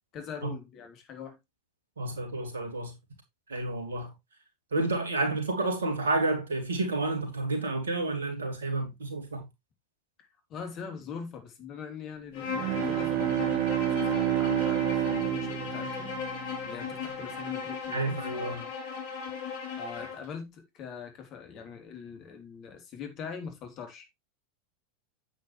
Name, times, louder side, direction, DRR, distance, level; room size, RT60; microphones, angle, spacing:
voice 1, 0.1-1.4 10.2-16.2 16.6-18.7 19.8-24.1, left 6 dB, 40° left, 3.2 m, -42 dB
voice 2, 2.0-2.9 3.5-4.1 4.7-9.4 17.9-18.6, right 2 dB, 75° right, 2.9 m, -30 dB
Bowed string instrument, 12.3-20.2, left 6 dB, 55° left, 3.2 m, -36 dB
Bowed string instrument 2, 12.5-17.0, right 15 dB, 50° right, 0.6 m, -29 dB
9.0 x 8.6 x 3.1 m
figure-of-eight pair, 90°, 0 cm